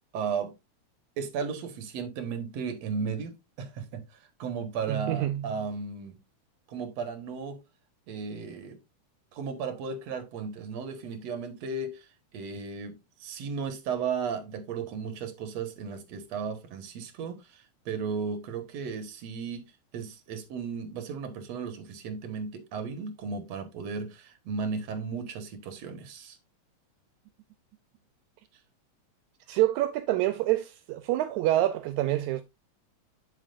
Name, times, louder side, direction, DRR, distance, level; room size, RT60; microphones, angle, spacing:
voice 1, 0.1-0.5 1.2-4.0 4.4-6.2 6.7-7.6 8.1-8.8 9.3-12.1 12.3-19.7 19.9-26.4, right 5 dB, 65° right, 2.5 m, -35 dB
voice 2, 4.9-5.5 29.5-32.4, right 15 dB, 85° right, 2.0 m, -27 dB
8.3 x 7.5 x 2.6 m
omnidirectional pair, 3.3 m